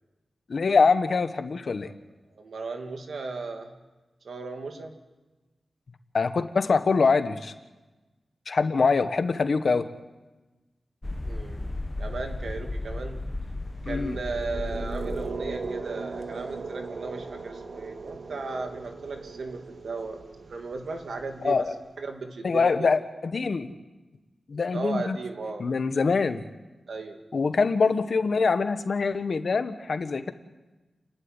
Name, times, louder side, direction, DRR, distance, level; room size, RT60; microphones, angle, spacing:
voice 1, 0.5-1.9 6.1-7.5 8.5-9.9 13.8-14.2 21.4-21.7 22.4-23.7 24.5-25.2 25.6-26.4 27.3-30.3, left 4 dB, 60° left, 10 dB, 1.2 m, -24 dB
voice 2, 2.3-3.7 4.2-4.9 11.2-11.7 12.0-13.2 13.9-20.2 20.5-21.7 22.0-22.9 24.7-25.7 26.9-27.2, right 3 dB, 80° right, 4 dB, 2.4 m, -36 dB
sound 1, 11.0-15.8, left 2 dB, 20° left, 1.2 m, -34 dB
sound 2, 13.7-21.8, right 4 dB, 60° right, 1.8 m, -38 dB
29.0 x 11.5 x 9.8 m, 1.2 s
wide cardioid pair, 100°, 0 cm